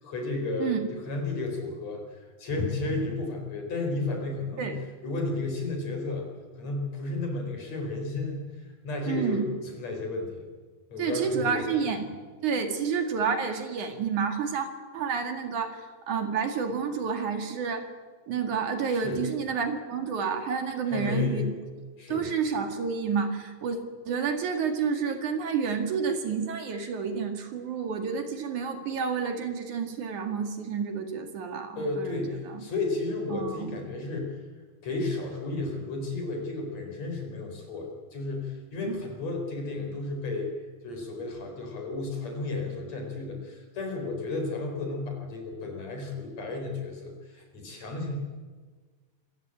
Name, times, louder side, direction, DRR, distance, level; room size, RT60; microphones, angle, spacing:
voice 1, 0.0-4.8 5.0-6.3 6.5-8.5 8.8-10.5 10.9-11.7 18.9-19.2 20.9-21.5 22.0-22.3 31.8-34.4 34.8-40.5 40.8-48.2, left 3 dB, 45° left, 3 dB, 5.4 m, -33 dB
voice 2, 9.1-9.4 11.0-12.1 12.4-14.7 14.9-17.9 18.3-21.5 22.1-23.8 24.0-32.1 32.4-32.6 33.3-33.7 38.9-39.0, right 6 dB, 55° right, 6 dB, 3.3 m, -29 dB
26.5 x 16.0 x 8.8 m, 1.4 s
omnidirectional pair, 4.3 m